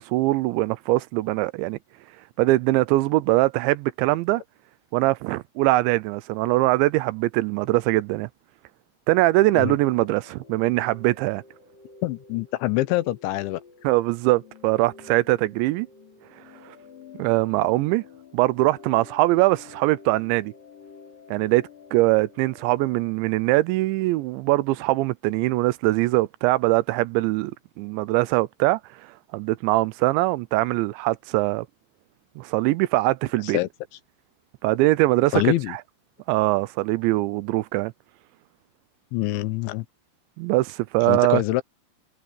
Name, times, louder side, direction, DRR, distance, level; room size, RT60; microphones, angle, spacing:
voice 1, 0.0-1.8 2.4-4.4 4.9-8.3 9.1-11.4 13.8-15.9 16.7-16.8 17.2-18.0 18.3-20.5 21.3-27.5 27.8-28.8 29.3-31.7 32.4-33.6 34.6-35.8 36.3-37.9 40.4-41.4, right 19 dB, 80° right, 2.8 m, -22 dB
sound 1, 9.6-23.1, left 5 dB, 50° left, 5.9 m, -49 dB
voice 2, 12.0-13.6 33.4-33.7 35.3-35.8 39.1-39.9 41.1-41.6, left 16 dB, 80° left, 3.3 m, -25 dB
omnidirectional pair, 5.4 m